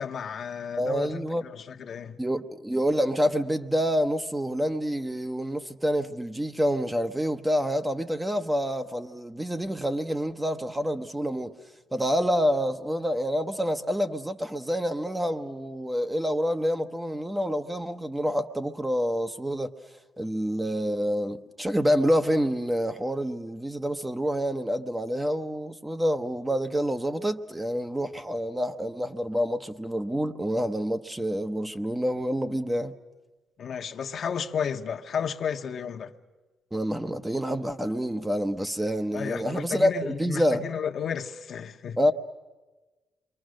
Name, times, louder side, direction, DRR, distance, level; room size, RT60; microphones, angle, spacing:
voice 1, 0.0-2.2 33.6-36.1 39.1-42.0, left 7 dB, 55° left, 1.1 m, -33 dB
voice 2, 0.8-1.4 2.2-11.6 11.9-19.7 20.2-32.9 36.7-40.7 42.0-42.1, equal, 10° right, 0.9 m, -27 dB
27.5 x 23.5 x 6.4 m
cardioid pair, 90°, 0 cm